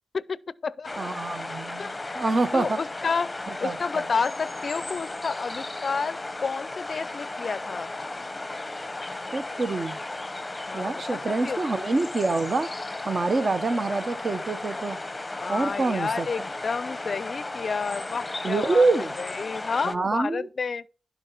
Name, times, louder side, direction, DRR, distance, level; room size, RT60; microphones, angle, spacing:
voice 1, 0.1-1.1 1.5-3.3 3.6-7.9 10.7-11.6 15.3-18.9 19.2-20.9, left 5 dB, 55° left, 0.4 m, -31 dB
sound 1, 0.8-20.0, left 2 dB, 25° left, 0.8 m, -35 dB
voice 2, 1.0-2.8 3.5-3.8 9.3-10.0 10.7-12.7 13.0-15.0 15.5-16.3 18.4-19.1 19.8-20.5, right 3 dB, 45° right, 0.9 m, -26 dB
11.5 x 4.7 x 5.6 m
cardioid pair, 60°, 0 cm